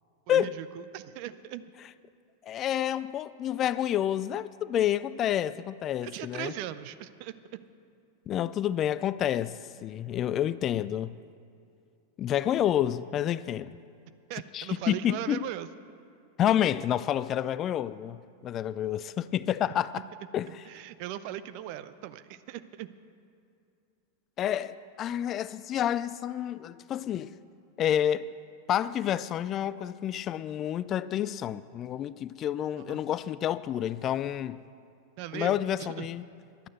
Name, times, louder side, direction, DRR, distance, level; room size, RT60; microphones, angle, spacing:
voice 1, 0.3-1.7 6.0-7.3 14.3-15.7 20.5-22.9 32.9-33.0 35.2-36.1, right 12 dB, 45° right, 0.5 m, -39 dB
voice 2, 2.4-6.5 8.3-11.2 12.2-13.8 14.5-15.5 16.4-20.0 20.3-20.6 24.4-27.3 27.8-28.3 28.7-34.6 35.3-36.2, left 11 dB, 30° left, 0.3 m, -29 dB
11.5 x 9.2 x 7.8 m
figure-of-eight pair, 90°, 0 cm